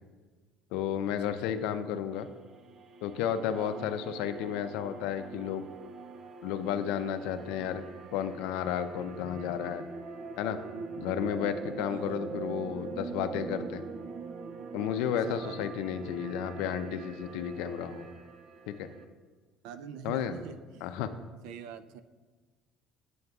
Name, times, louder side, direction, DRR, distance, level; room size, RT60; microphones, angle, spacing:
voice 1, 0.7-2.3 3.0-5.6 6.4-7.8 8.1-9.8 10.4-10.6 11.0-13.8 14.7-18.1 18.7-18.9 20.0-20.4 20.8-21.1, left 9 dB, 90° left, 10 dB, 0.5 m, -32 dB
sound 1, 2.1-19.0, right 4 dB, 40° right, 0.6 m, -43 dB
voice 2, 3.5-3.9 11.9-12.1 15.3-15.6 19.6-20.9 21.4-22.0, right 8 dB, 85° right, 11 dB, 0.4 m, -44 dB
9.3 x 7.7 x 2.4 m, 1.4 s
cardioid pair, 140°, 0 cm